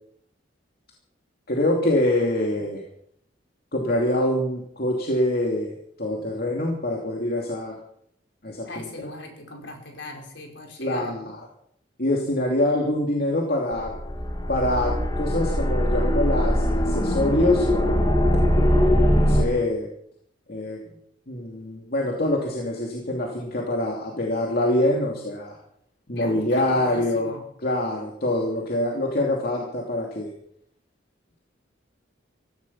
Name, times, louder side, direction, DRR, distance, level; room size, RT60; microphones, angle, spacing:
voice 1, 1.5-2.8 3.7-7.8 8.4-8.9 10.8-11.2 12.0-13.9 14.5-18.2 19.1-19.9 20.5-20.8 21.3-25.6 26.1-27.3 27.6-30.3, left 1 dB, 50° left, -1 dB, 2.8 m, -25 dB
voice 2, 8.6-11.2 26.1-27.4, left 2 dB, 65° left, 2 dB, 5.2 m, -39 dB
sound 1, 13.7-19.4, equal, 25° left, 2.4 m, -21 dB
16.0 x 15.0 x 5.9 m, 0.68 s
head